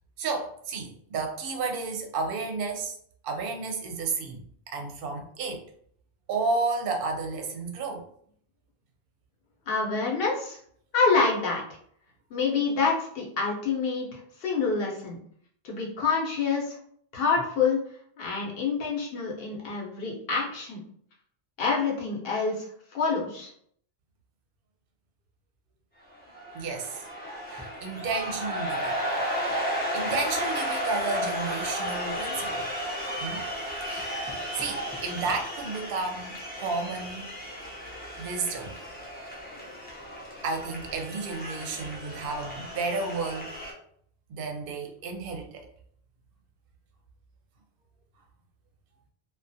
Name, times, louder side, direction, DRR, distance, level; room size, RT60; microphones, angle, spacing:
voice 1, 0.2-2.9 3.2-4.4 4.7-5.6 6.3-8.1 26.5-27.0 27.5-28.9 29.4-32.7 33.2-33.5 33.8-34.3 34.5-37.3 38.2-38.8 40.4-43.5 44.3-45.7, right 4 dB, 65° right, 3 dB, 0.7 m, -32 dB
voice 2, 9.7-10.6 10.9-11.6 12.3-15.2 15.6-16.8 17.1-17.8 18.2-20.8 21.6-22.7 22.9-23.5, left 4 dB, 65° left, -2 dB, 0.9 m, -27 dB
sound 1, 26.1-43.7, equal, 15° left, 0.4 m, -34 dB
2.4 x 2.2 x 2.6 m, 0.63 s
omnidirectional pair, 1.1 m